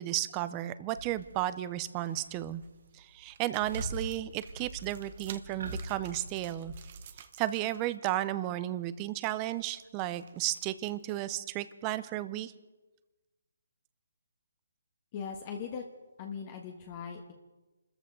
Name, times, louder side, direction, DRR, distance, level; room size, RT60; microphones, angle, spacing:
voice 1, 0.0-2.6 3.0-6.7 7.4-12.5, right 14 dB, 20° right, 14 dB, 0.6 m, -33 dB
sound 1, 1.0-1.6 2.0-2.6 2.9-3.2 3.6-7.1, right 1 dB, 70° right, 3.5 m, -42 dB
sound 2, 1.3-1.6 2.0-2.7 3.2-8.5 8.8-11.1, right 8 dB, 35° right, 1.1 m, -53 dB
voice 2, 15.1-15.8 16.2-17.3, left 6 dB, 30° left, 2 dB, 1.4 m, -39 dB
26.5 x 14.0 x 3.9 m, 1.1 s
hypercardioid pair, 160°, 0 cm